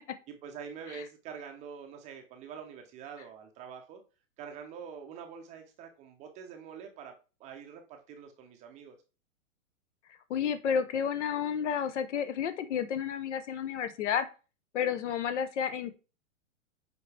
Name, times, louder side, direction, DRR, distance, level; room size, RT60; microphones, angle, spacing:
voice 1, 0.3-4.0 4.4-7.1 7.4-9.0, right 7 dB, 20° right, 4 dB, 0.6 m, -45 dB
voice 2, 10.3-14.3 14.7-15.9, left 8 dB, 60° left, 12 dB, 0.9 m, -31 dB
7.2 x 4.4 x 3.3 m, 0.33 s
hypercardioid pair, 145°, 39 cm